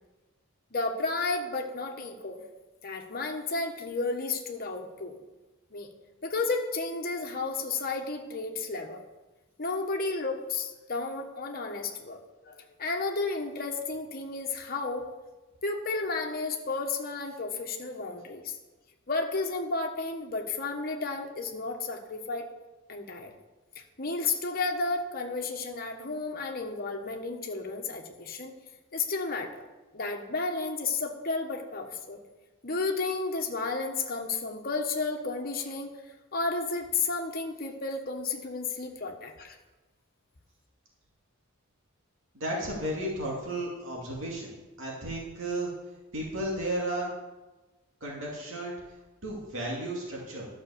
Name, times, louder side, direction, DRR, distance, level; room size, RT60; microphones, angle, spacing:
voice 1, 0.7-2.4 2.8-5.2 5.7-5.9 6.2-9.0 9.6-12.2 12.4-15.0 15.6-18.6 19.1-22.5 22.9-23.3 23.7-28.5 28.9-29.5 29.9-32.2 32.6-36.0 36.3-39.6, left 3 dB, 45° left, 2 dB, 1.3 m, -32 dB
voice 2, 42.3-45.7 46.1-47.1 48.0-48.8 49.2-50.5, right 1 dB, 65° right, -3 dB, 2.6 m, -33 dB
12.0 x 6.2 x 7.0 m, 1.1 s
head